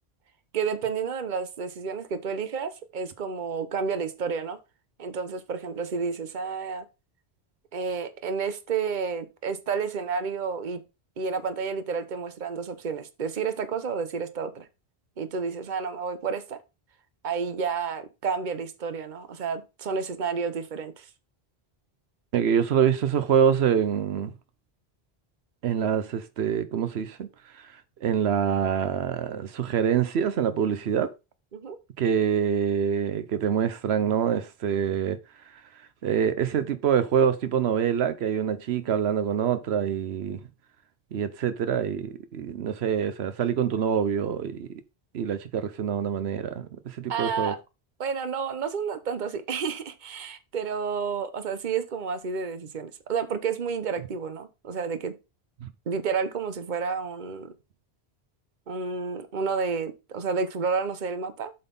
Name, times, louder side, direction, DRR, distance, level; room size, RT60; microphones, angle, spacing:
voice 1, 0.5-4.6 5.0-6.9 7.7-10.8 11.2-14.7 15.2-16.6 17.2-21.1 31.5-31.8 47.1-47.6 48.0-55.1 55.9-57.5 58.7-61.5, right 5 dB, 50° right, 1.0 m, -30 dB
voice 2, 22.3-24.3 25.6-27.3 27.5-27.7 28.0-31.1 32.0-35.2 36.0-40.4 41.1-44.7 45.1-47.5 55.6-55.7, right 8 dB, 85° right, 1.0 m, -25 dB
7.7 x 4.0 x 5.3 m
omnidirectional pair, 1.1 m